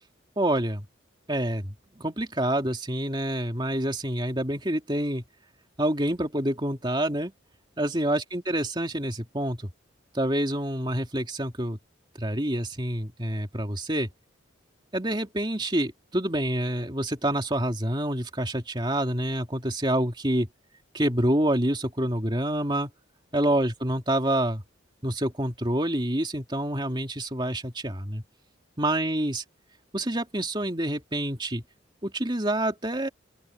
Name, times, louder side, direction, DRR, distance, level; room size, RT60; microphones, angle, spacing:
voice 1, 0.4-0.8 1.3-5.2 5.8-7.3 7.8-9.6 10.1-11.8 12.2-14.1 14.9-20.5 20.9-22.9 23.3-24.6 25.0-28.2 28.8-29.4 29.9-31.6 32.0-33.1, right 1 dB, 20° right, 3.0 m, -27 dB
open air
head